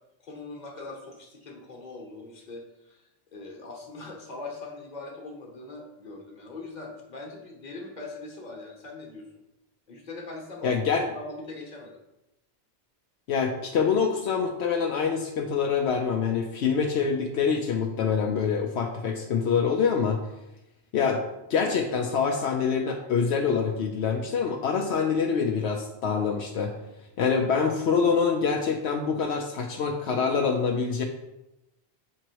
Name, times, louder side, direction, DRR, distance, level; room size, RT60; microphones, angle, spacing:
voice 1, 0.2-9.3 9.9-10.7 11.1-12.0, left 3 dB, 45° left, 0 dB, 1.2 m, -41 dB
voice 2, 10.6-11.0 13.3-20.2 20.9-21.2 21.5-26.7 27.2-31.0, left 6 dB, 80° left, 2 dB, 0.9 m, -25 dB
7.6 x 3.0 x 4.6 m, 0.91 s
omnidirectional pair, 1.1 m